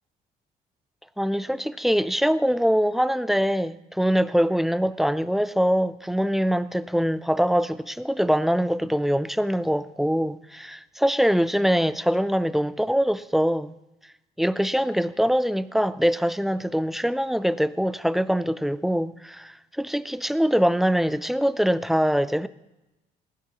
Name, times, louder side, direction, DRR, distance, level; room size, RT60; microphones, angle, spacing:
voice 1, 1.2-13.7 14.4-22.5, equal, ahead, 0.4 m, -23 dB
19.0 x 15.5 x 3.0 m
cardioid pair, 110°, 17 cm